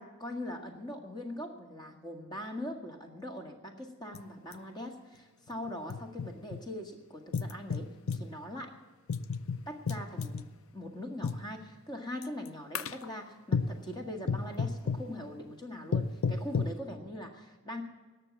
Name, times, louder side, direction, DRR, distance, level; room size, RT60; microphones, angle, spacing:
voice 1, 0.0-8.7 9.7-10.5 10.7-17.8, left 1 dB, 20° left, 3 dB, 1.8 m, -41 dB
sound 1, 4.1-4.2 4.5-4.6 5.5-6.6 7.3-8.3 9.1-10.4 11.2-11.5 12.2-12.5 12.7-13.1 13.5-13.8 14.3-15.1 15.9-16.8, left 5 dB, 70° left, 0.6 m, -32 dB
18.0 x 6.7 x 8.3 m, 1.3 s
head